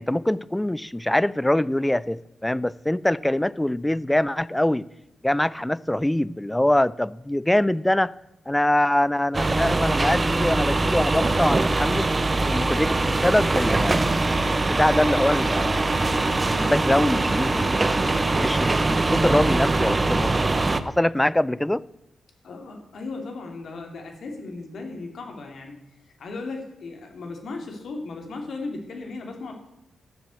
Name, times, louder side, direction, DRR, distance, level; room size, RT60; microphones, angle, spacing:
voice 1, 0.0-4.9 5.2-8.1 8.5-12.1 12.5-14.1 14.6-15.8 16.6-18.0 18.4-20.4 20.8-21.8, left 1 dB, 10° left, 0.4 m, -23 dB
sound 1, 9.3-20.8, right 2 dB, 25° right, 0.7 m, -22 dB
voice 2, 22.4-25.8 26.2-29.5, left 3 dB, 65° left, 3.1 m, -36 dB
13.0 x 7.5 x 7.9 m
cardioid pair, 105°, 0 cm